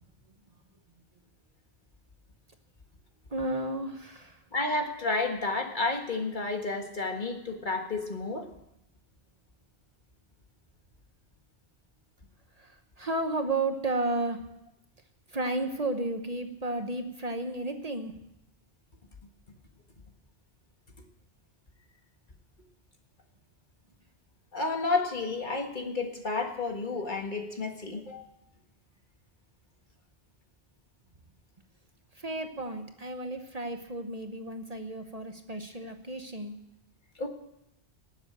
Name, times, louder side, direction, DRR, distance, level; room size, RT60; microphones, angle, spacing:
voice 1, 3.3-4.4 12.6-14.4 15.3-18.1 32.1-36.6, right 2 dB, 40° right, 6 dB, 1.1 m, -33 dB
voice 2, 4.5-8.5 24.5-28.2 37.2-37.3, left 3 dB, 50° left, 4 dB, 1.8 m, -31 dB
18.5 x 7.6 x 8.8 m, 0.86 s
omnidirectional pair, 1.1 m